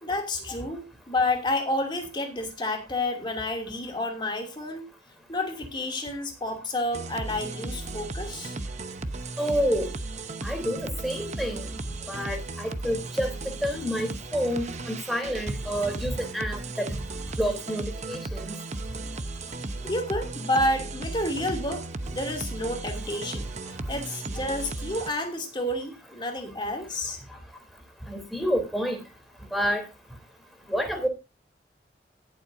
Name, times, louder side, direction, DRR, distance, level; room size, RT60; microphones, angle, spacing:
voice 1, 0.0-4.8 5.3-8.5 19.8-23.5 23.9-27.2, left 1 dB, 25° left, 3 dB, 2.7 m, -30 dB
sound 1, 6.9-25.1, right 2 dB, 40° right, 0.9 m, -35 dB
voice 2, 9.4-9.9 10.4-11.6 12.1-13.3 13.6-16.9 17.4-18.5 28.1-29.0 29.5-29.8 30.7-31.1, equal, ahead, 4 dB, 3.2 m, -28 dB
18.5 x 7.8 x 2.6 m, 0.25 s
head